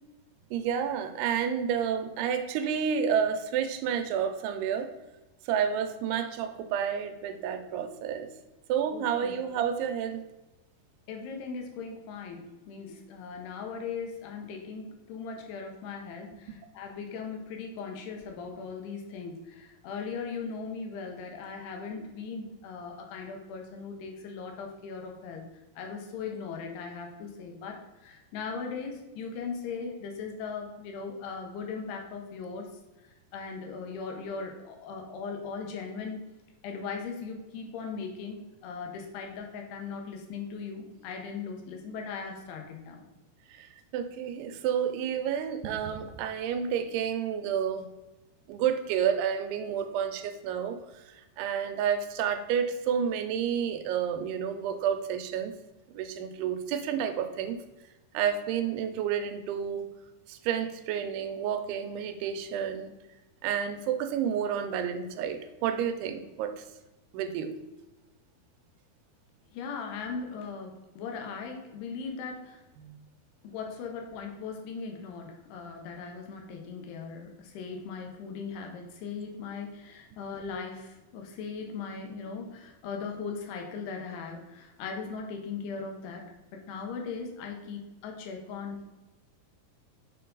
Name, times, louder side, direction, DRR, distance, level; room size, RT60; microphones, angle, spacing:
voice 1, 0.5-4.9 5.5-8.3 8.7-10.2 43.5-47.9 48.5-50.8 51.1-55.5 55.9-57.6 58.1-59.9 60.3-62.9 63.4-66.6 67.1-67.5 72.8-73.0, right 8 dB, 85° right, 8 dB, 2.6 m, -30 dB
voice 2, 8.9-9.4 11.1-25.4 25.8-32.7 33.3-36.2 36.6-43.0 69.5-72.6 73.4-86.2 86.7-88.9, left 5 dB, 85° left, 2 dB, 3.0 m, -39 dB
6.6 x 4.6 x 3.9 m, 1.0 s
omnidirectional pair, 4.6 m